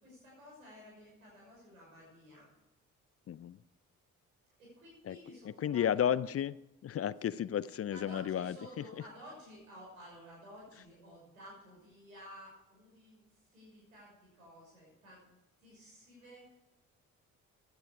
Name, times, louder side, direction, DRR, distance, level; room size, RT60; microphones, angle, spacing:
voice 1, 0.0-2.5 4.6-6.2 7.9-16.6, equal, 90° right, -3 dB, 6.2 m, -53 dB
voice 2, 3.3-3.6 5.0-5.2 5.4-6.6 6.8-9.0, left 9 dB, 35° left, 19 dB, 0.5 m, -33 dB
16.0 x 10.5 x 4.9 m, 0.94 s
figure-of-eight pair, 40°, 40 cm